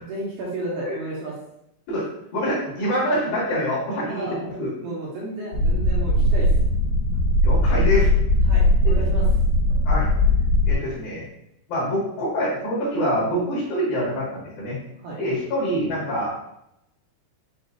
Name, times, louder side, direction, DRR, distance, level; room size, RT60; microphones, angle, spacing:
voice 1, 0.0-1.3 4.1-4.4 4.8-6.5 8.5-9.2 15.0-15.2, right 2 dB, 75° right, -5 dB, 2.7 m, -32 dB
voice 2, 2.3-4.7 7.4-8.1 8.9-9.0 9.8-10.1 10.6-11.3 11.7-14.8 15.2-16.4, equal, 60° left, -7 dB, 3.1 m, -25 dB
sound 1, 5.5-10.7, left 1 dB, 85° left, 2.9 m, -19 dB
7.7 x 2.8 x 2.4 m, 0.81 s
omnidirectional pair, 5.2 m